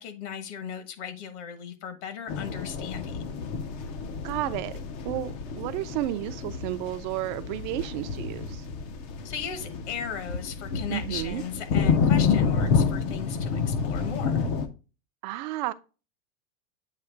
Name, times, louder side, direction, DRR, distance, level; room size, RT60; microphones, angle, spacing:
voice 1, 0.0-3.4 9.2-14.5, left 8 dB, 60° left, 1.3 m, -37 dB
sound 1, 2.3-14.7, left 6 dB, 25° left, 0.4 m, -29 dB
voice 2, 4.2-4.7 5.0-8.7 10.9-11.4 15.2-15.7, right 15 dB, 40° right, 0.4 m, -32 dB
8.3 x 2.8 x 4.5 m
supercardioid pair, 170°, 38 cm